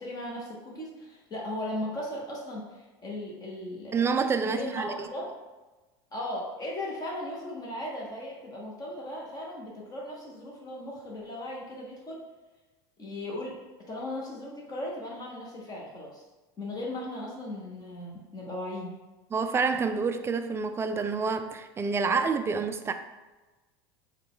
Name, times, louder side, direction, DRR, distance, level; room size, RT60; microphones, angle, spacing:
voice 1, 0.0-3.9 4.4-5.3 6.1-12.2 13.0-13.6 13.9-16.2 16.6-18.9, left 1 dB, 30° left, 0.9 m, -37 dB
voice 2, 3.9-5.1 19.3-22.9, right 5 dB, 20° right, 0.3 m, -28 dB
3.7 x 2.3 x 3.8 m
hypercardioid pair, 85°, 13 cm